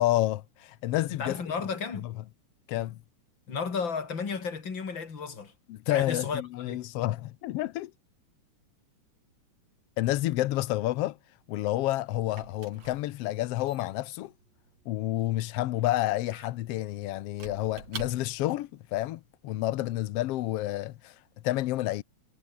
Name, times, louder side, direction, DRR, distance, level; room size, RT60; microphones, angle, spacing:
voice 1, 0.0-1.4 2.7-3.0 5.7-7.9 10.0-11.2 11.5-14.3 14.9-21.1 21.4-22.0, left 15 dB, 80° left, 1.3 m, -29 dB
voice 2, 1.2-2.1 3.5-5.5 5.9-6.8, left 5 dB, 35° left, 3.5 m, -33 dB
Squeak / Wood, 11.4-18.6, right 5 dB, 55° right, 5.2 m, -48 dB
omnidirectional pair, 3.6 m